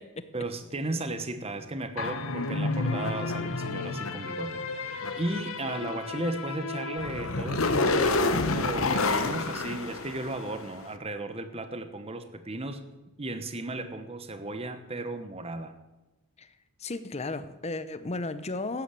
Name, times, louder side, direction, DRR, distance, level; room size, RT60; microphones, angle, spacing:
voice 1, 0.3-12.8 13.2-15.7, right 2 dB, 25° right, 10 dB, 1.1 m, -35 dB
sound 1, 2.0-10.7, left 3 dB, 65° left, 1.1 m, -29 dB
voice 2, 16.8-18.8, left 2 dB, 30° left, 12 dB, 0.7 m, -34 dB
14.5 x 9.9 x 7.6 m, 1.1 s
head